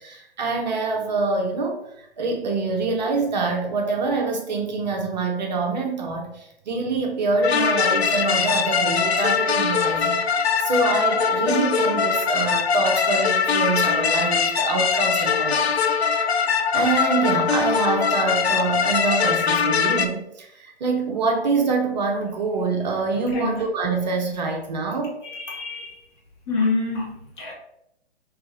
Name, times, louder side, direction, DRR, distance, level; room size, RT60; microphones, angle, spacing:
voice 1, 0.0-15.7 16.1-16.2 16.7-25.2, right 3 dB, 45° right, 2 dB, 0.6 m, -25 dB
sound 1, 7.4-20.1, left 6 dB, 80° left, 0.5 m, -22 dB
voice 2, 23.3-23.6 25.3-26.0 26.5-27.5, left 3 dB, 25° left, -2 dB, 0.8 m, -26 dB
4.6 x 2.4 x 2.6 m, 0.78 s
figure-of-eight pair, 130°, 32 cm